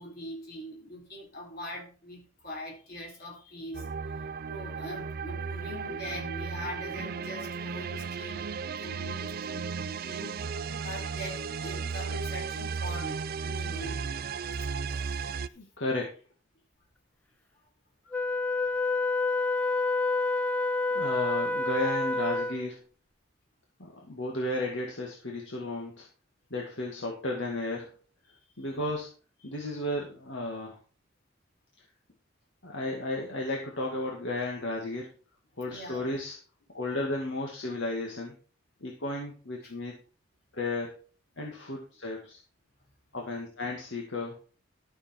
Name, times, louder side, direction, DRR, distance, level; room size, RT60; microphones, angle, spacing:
voice 1, 0.0-3.9 4.5-8.5 8.8-10.5 10.8-14.1 14.5-14.7 35.6-36.0 39.6-39.7, equal, 50° left, 0 dB, 4.6 m, -42 dB
sound 1, 3.7-15.5, right 5 dB, 45° right, 0.4 m, -35 dB
voice 2, 15.5-16.2 20.9-22.8 23.8-26.1 26.5-27.9 28.6-29.1 29.4-30.8 32.6-35.1 35.6-36.4 36.7-38.3 38.8-39.9 40.5-41.0 41.4-42.4 43.1-44.4, left 2 dB, 65° left, -1 dB, 2.0 m, -33 dB
Wind instrument woodwind instrument, 18.1-22.7, left 2 dB, 5° left, 0.5 m, -28 dB
12.5 x 6.8 x 4.5 m, 0.37 s
head